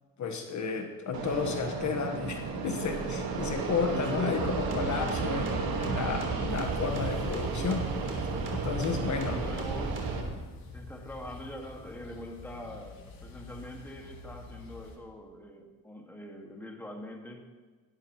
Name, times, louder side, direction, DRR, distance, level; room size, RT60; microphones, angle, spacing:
voice 1, 0.2-9.5, left 5 dB, 55° left, 3 dB, 1.5 m, -32 dB
Fixed-wing aircraft airplane, 1.1-10.2, right 5 dB, 80° right, 1.8 m, -34 dB
voice 2, 3.9-4.5 9.0-10.2 10.7-17.4, equal, 5° left, 1 dB, 1.9 m, -43 dB
sound 1, 4.3-10.3, right 2 dB, 35° right, 3.3 m, -36 dB
sound 2, 6.5-15.0, left 2 dB, 75° left, 2.3 m, -47 dB
17.0 x 12.5 x 3.1 m, 1.4 s
cardioid pair, 105°, 35 cm